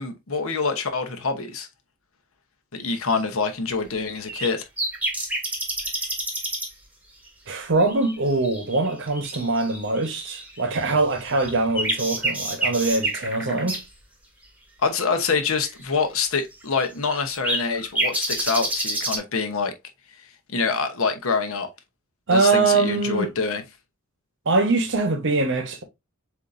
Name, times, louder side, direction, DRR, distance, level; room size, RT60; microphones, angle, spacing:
voice 1, 0.0-1.7 2.7-4.6 14.8-19.7 20.5-21.7 22.3-23.6, left 4 dB, 70° left, 0.9 m, -25 dB
sound 1, 4.2-4.5 4.8-6.7 7.3-7.4 7.8-10.7 11.2-13.8 15.8-15.9 16.5-16.6 17.0-19.2, right 2 dB, 5° right, 1.0 m, -28 dB
voice 2, 7.5-13.8 22.3-23.3 24.5-25.8, right 3 dB, 55° right, 1.0 m, -23 dB
7.2 x 2.6 x 2.5 m
head